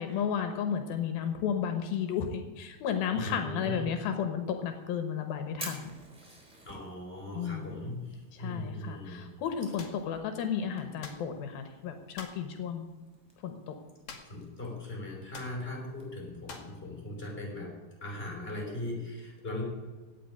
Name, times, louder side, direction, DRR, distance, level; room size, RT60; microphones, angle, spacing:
voice 1, 0.0-5.9 7.3-7.8 8.3-12.9 13.4-13.8, left 7 dB, 80° left, 7 dB, 2.9 m, -33 dB
voice 2, 3.1-3.9 6.7-9.2 14.3-17.7 18.0-19.6, left 1 dB, 15° left, -1 dB, 5.4 m, -39 dB
Fire, 4.5-16.1, right 1 dB, 10° right, 4.0 m, -52 dB
sound 1, 9.8-10.0 11.0-11.3 12.2-12.5 14.1-14.5 14.7-14.8 15.3-15.6 16.5-16.8, left 5 dB, 55° left, 2.6 m, -45 dB
17.0 x 6.0 x 9.6 m, 1.3 s
omnidirectional pair, 4.2 m